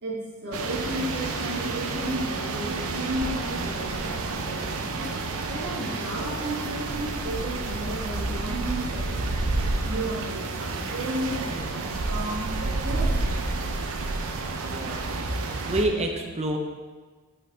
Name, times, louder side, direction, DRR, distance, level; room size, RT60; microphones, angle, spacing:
voice 1, 0.0-5.1 5.5-9.4 9.8-13.7, right 1 dB, 50° right, -6 dB, 1.7 m, -33 dB
sound 1, 0.5-15.9, right 3 dB, 65° right, 0.6 m, -30 dB
voice 2, 14.6-16.6, right 1 dB, 30° right, 3 dB, 0.7 m, -28 dB
5.6 x 5.5 x 4.1 m, 1.4 s
head